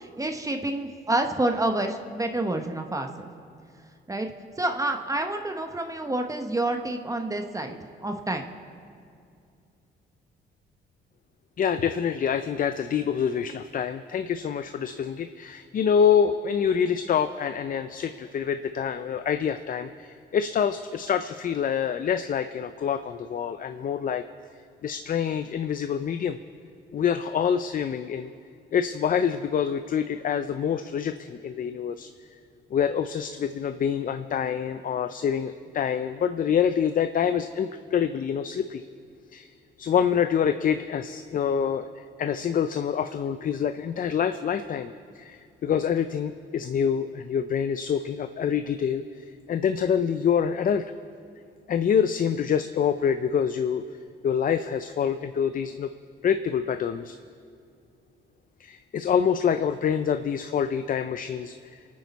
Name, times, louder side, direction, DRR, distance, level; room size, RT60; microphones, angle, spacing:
voice 1, 0.0-3.3 4.1-4.3 4.6-8.5, right 2 dB, 15° right, 5 dB, 0.9 m, -28 dB
voice 2, 11.6-24.2 24.8-26.4 26.9-28.3 28.7-32.1 32.7-38.9 39.3-39.5 39.8-50.8 51.7-53.8 54.2-55.9 56.2-57.2 58.6-61.8, left 7 dB, 45° left, 10 dB, 0.5 m, -26 dB
27.5 x 9.5 x 4.1 m, 2.4 s
cardioid pair, 90°, 20 cm